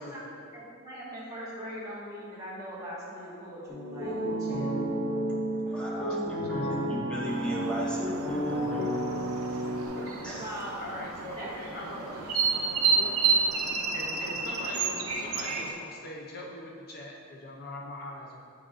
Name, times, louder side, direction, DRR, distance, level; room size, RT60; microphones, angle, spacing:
voice 1, 0.0-0.3 6.4-6.9 8.8-8.9 10.0-10.1 10.8-12.3 12.9-13.1 13.9-18.4, left 1 dB, 45° left, -2 dB, 0.7 m, -41 dB
voice 2, 0.5-4.9 10.3-12.8, equal, 20° right, -7 dB, 1.5 m, -41 dB
sound 1, 3.7-9.9, right 1 dB, 30° left, 1.5 m, -31 dB
voice 3, 5.5-8.8 10.2-10.5, equal, 5° left, -6 dB, 1.0 m, -36 dB
sound 2, 7.3-15.7, right 4 dB, 80° right, 0.7 m, -31 dB
7.9 x 6.2 x 2.5 m, 2.2 s
head